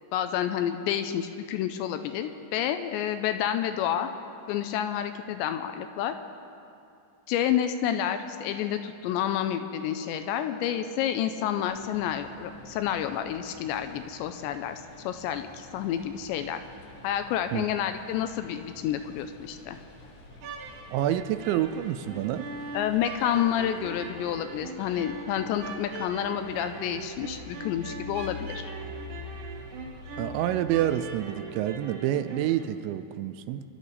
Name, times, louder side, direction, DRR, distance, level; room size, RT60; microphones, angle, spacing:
voice 1, 0.1-4.1 4.5-6.2 7.3-16.6 17.0-19.8 22.7-28.7, left 10 dB, 80° left, 8 dB, 2.7 m, -29 dB
sound 1, 11.7-31.3, left 2 dB, 60° left, 1.8 m, -47 dB
sound 2, 20.3-32.6, right 3 dB, 60° right, 2.7 m, -41 dB
voice 2, 20.9-22.5 30.2-33.6, right 12 dB, 85° right, 10 dB, 2.8 m, -28 dB
27.5 x 11.5 x 4.1 m, 2.6 s
omnidirectional pair, 5.3 m